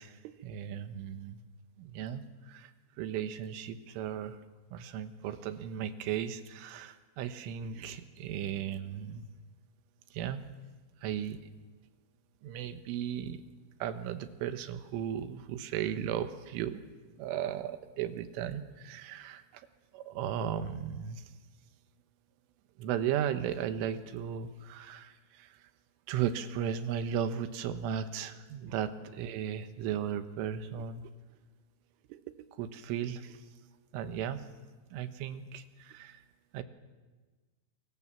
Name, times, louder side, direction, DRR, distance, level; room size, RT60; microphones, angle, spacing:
voice 1, 0.0-1.4 1.8-2.7 3.0-4.4 4.7-9.3 10.1-10.4 11.0-11.4 12.4-13.4 13.8-16.8 17.2-19.7 19.9-21.2 22.8-25.6 26.1-31.1 32.1-32.2 32.5-33.4 33.9-34.4 34.9-36.2 36.5-36.6, right 9 dB, 90° right, 10 dB, 3.7 m, -36 dB
28.0 x 23.0 x 7.4 m, 1.3 s
omnidirectional pair, 5.5 m